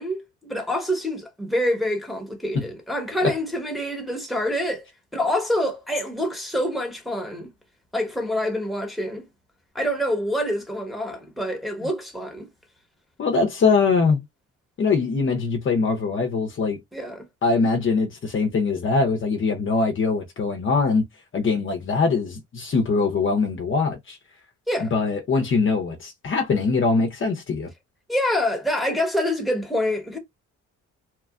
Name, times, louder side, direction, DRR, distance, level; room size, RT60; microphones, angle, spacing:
voice 1, 0.0-4.8 5.1-7.5 7.9-9.3 9.7-12.5 16.9-17.3 24.7-24.9 28.1-30.2, left 1 dB, ahead, 1.1 m, -26 dB
voice 2, 13.2-14.2 14.8-16.8 17.4-21.0 21.3-24.2 24.8-27.7, left 4 dB, 40° left, 0.7 m, -22 dB
2.9 x 2.3 x 2.4 m
cardioid pair, 90°, 30 cm